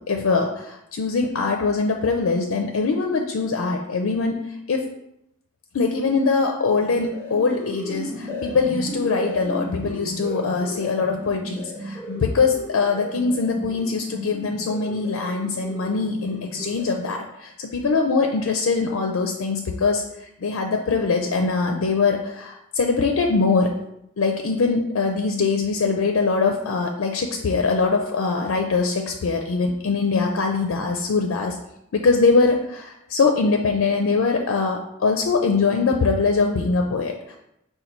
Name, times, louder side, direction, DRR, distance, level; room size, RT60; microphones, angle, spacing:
voice 1, 0.1-4.4 4.7-4.8 5.7-23.7 24.2-31.6 31.9-37.4, left 4 dB, 75° left, 3 dB, 0.4 m, -22 dB
sound 1, 6.8-17.3, equal, 10° left, 1.0 m, -34 dB
5.2 x 2.2 x 4.4 m, 0.82 s
head